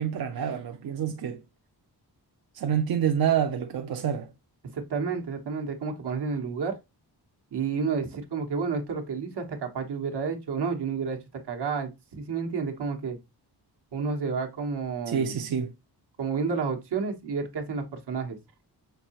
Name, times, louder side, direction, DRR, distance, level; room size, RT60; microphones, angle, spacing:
voice 1, 0.0-1.4 2.5-4.3 15.1-15.7, right 8 dB, 65° right, 0.5 m, -27 dB
voice 2, 4.7-6.7 7.5-11.2 11.5-13.2 13.9-15.4 16.2-18.4, right 5 dB, 80° right, 1.2 m, -30 dB
5.9 x 2.7 x 2.9 m
wide cardioid pair, 115°, 39 cm